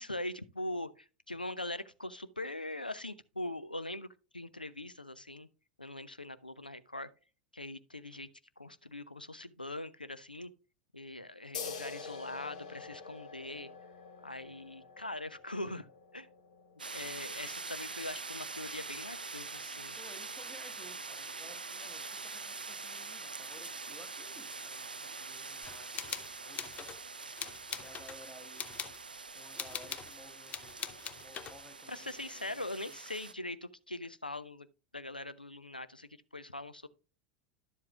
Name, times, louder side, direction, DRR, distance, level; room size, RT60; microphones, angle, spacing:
voice 1, 0.0-4.1 4.3-5.5 5.8-7.1 7.5-8.3 8.6-10.5 10.9-13.7 14.2-15.9 16.1-16.3 16.9-20.0 31.9-34.7 34.9-36.9, left 1 dB, 90° left, 0.4 m, -42 dB
sound 1, 11.5-18.7, left 5 dB, 60° left, 1.1 m, -47 dB
sound 2, 16.8-33.3, right 4 dB, 85° right, 0.4 m, -44 dB
voice 2, 20.0-27.2 27.8-28.7 29.3-30.8 31.2-32.9, equal, 5° left, 1.3 m, -56 dB
sound 3, 25.6-27.0 27.4-28.2 28.6-29.0 29.6-30.1 30.5-31.6, left 8 dB, 30° left, 0.6 m, -42 dB
11.0 x 7.5 x 2.3 m
figure-of-eight pair, 85°, 5 cm